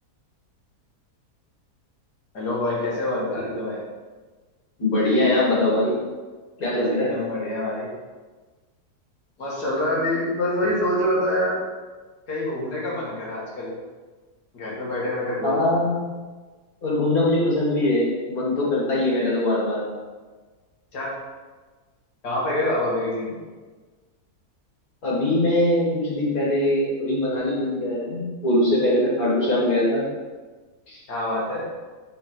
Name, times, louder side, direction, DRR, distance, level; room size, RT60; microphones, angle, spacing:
voice 1, 2.3-3.8 6.7-7.9 9.4-11.6 12.3-13.7 14.5-15.8 20.9-21.1 22.2-23.4 31.1-31.6, left 1 dB, 90° left, -6 dB, 2.4 m, -26 dB
voice 2, 4.8-5.9 6.6-7.1 15.4-16.0 16.8-19.8 25.0-30.0 30.9-31.0, left 1 dB, 65° left, -6 dB, 2.4 m, -22 dB
5.4 x 4.3 x 5.8 m, 1.3 s
omnidirectional pair, 1.7 m